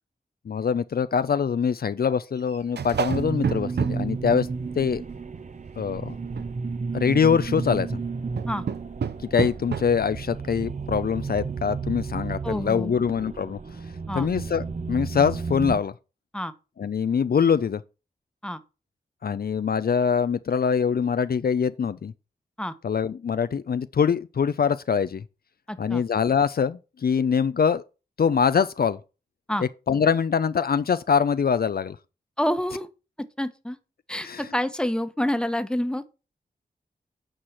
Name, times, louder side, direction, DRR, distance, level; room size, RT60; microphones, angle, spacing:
voice 1, 0.5-4.5 4.8-5.0 5.8-6.2 6.9-8.0 9.3-13.6 14.1-15.9 16.8-17.8 19.2-22.1 22.8-25.2 25.8-27.8 28.2-29.0 29.6-32.0 34.2-34.4, left 6 dB, 60° left, 0.5 m, -24 dB
sound 1, 2.4-5.0 5.3-5.8 6.2-6.5 7.1-7.4 8.4-10.0 10.6-10.7 11.0-11.1 11.3-11.6, right 6 dB, 75° right, 0.7 m, -31 dB
sound 2, 3.1-15.8, right 4 dB, 45° right, 0.8 m, -32 dB
voice 2, 12.4-12.9 14.1-14.3 16.3-16.5 18.4-18.6 22.6-22.7 25.7-26.0 29.5-29.6 32.4-32.9 33.4-33.8 34.1-36.1, left 1 dB, 5° left, 1.1 m, -28 dB
8.8 x 4.8 x 5.8 m
cardioid pair, 50°, 17 cm